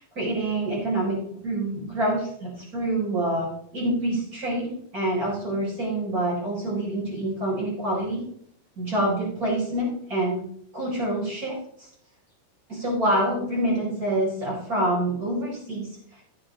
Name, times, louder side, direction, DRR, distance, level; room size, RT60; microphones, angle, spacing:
voice 1, 0.1-1.2 1.4-3.5 3.7-8.2 8.8-10.4 10.7-11.9 12.7-16.2, right 1 dB, 20° right, -5 dB, 4.7 m, -26 dB
14.5 x 8.0 x 3.7 m, 0.67 s
omnidirectional pair, 4.4 m